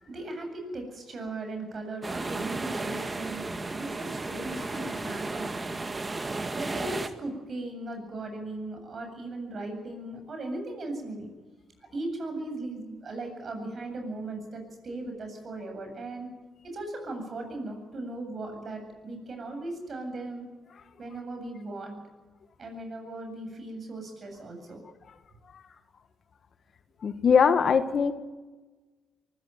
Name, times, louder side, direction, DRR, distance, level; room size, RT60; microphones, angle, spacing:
voice 1, 0.0-5.8 6.5-11.3 11.9-16.3 16.6-20.5 21.0-22.0 22.6-24.8, right 2 dB, 45° right, 4 dB, 8.0 m, -38 dB
sound 1, 2.0-7.1, right 3 dB, 25° right, 1.9 m, -34 dB
voice 2, 27.0-28.1, left 6 dB, 50° left, 10 dB, 1.6 m, -21 dB
23.5 x 15.5 x 9.4 m, 1.3 s
cardioid pair, 90°, 0 cm